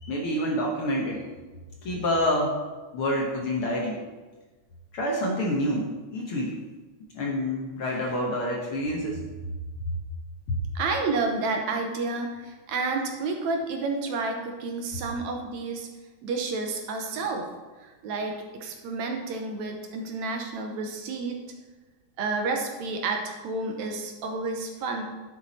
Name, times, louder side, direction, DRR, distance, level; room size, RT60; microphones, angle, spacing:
voice 1, 0.0-1.2 1.8-2.6 2.9-4.0 4.9-6.5 7.1-9.2 9.8-9.9 10.5-10.6, left 1 dB, 55° left, -1 dB, 1.7 m, -27 dB
voice 2, 10.8-15.9 16.2-17.5 17.8-21.4 22.2-25.0, right 3 dB, 70° right, 3 dB, 2.2 m, -30 dB
10.5 x 7.6 x 4.2 m, 1.3 s
omnidirectional pair, 3.5 m